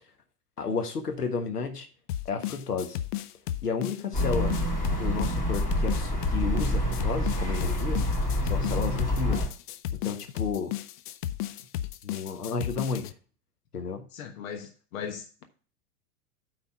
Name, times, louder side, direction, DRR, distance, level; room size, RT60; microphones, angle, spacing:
voice 1, 0.6-1.9 2.2-3.0 3.6-4.6 5.0-8.1 8.4-9.4 9.9-10.7 12.0-13.1 13.7-14.0, left 5 dB, 80° left, 6 dB, 1.5 m, -32 dB
sound 1, 2.1-13.1, left 12 dB, 35° left, 0.4 m, -34 dB
sound 2, 4.1-9.5, equal, 20° left, 3.2 m, -27 dB
voice 2, 14.1-15.4, left 7 dB, 60° left, 5 dB, 1.1 m, -38 dB
8.9 x 4.0 x 5.7 m, 0.40 s
figure-of-eight pair, 100°, 46 cm